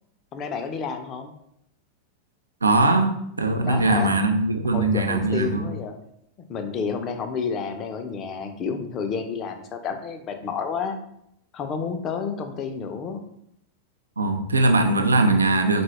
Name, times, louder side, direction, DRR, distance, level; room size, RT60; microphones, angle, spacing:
voice 1, 0.3-1.3 3.6-4.1 4.7-5.9 6.5-11.0 11.5-13.2, left 5 dB, 30° left, 6 dB, 0.5 m, -30 dB
voice 2, 2.6-5.8 14.2-15.8, right 2 dB, 75° right, 5 dB, 0.4 m, -21 dB
3.9 x 2.3 x 3.1 m, 0.75 s
figure-of-eight pair, 90°, 0 cm